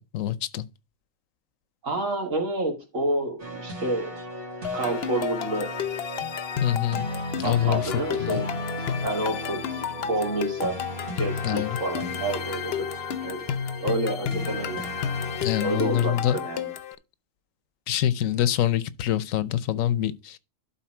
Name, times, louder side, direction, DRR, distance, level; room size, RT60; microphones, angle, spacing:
voice 1, 0.1-0.6 6.6-7.1 7.4-7.8 8.2-8.4 11.4-11.8 15.4-16.4 17.9-20.4, left 11 dB, 80° left, 1.1 m, -25 dB
voice 2, 1.8-4.1 4.7-5.7 7.4-8.5 9.0-10.8 11.2-12.9 13.2-13.4 13.8-14.8 15.6-16.7, right 2 dB, 75° right, 2.9 m, -29 dB
sound 1, 3.4-15.5, equal, 40° right, 1.9 m, -36 dB
sound 2, 4.6-16.9, left 8 dB, 55° left, 0.8 m, -32 dB
11.5 x 4.2 x 4.4 m
omnidirectional pair, 1.4 m